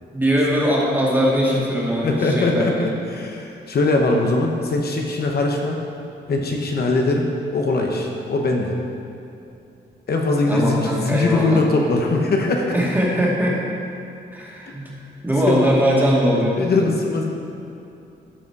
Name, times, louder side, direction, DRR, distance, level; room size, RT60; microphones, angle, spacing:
voice 1, 0.1-2.9 10.5-11.6 12.4-12.5 12.7-13.6 14.3-14.9 15.2-16.6, equal, 10° right, -5 dB, 2.2 m, -20 dB
voice 2, 2.0-5.8 6.3-8.8 10.1-12.7 15.5-15.6 16.6-17.2, left 2 dB, 60° left, 1 dB, 1.0 m, -21 dB
13.0 x 4.9 x 4.8 m, 2.7 s
cardioid pair, 90°, 19 cm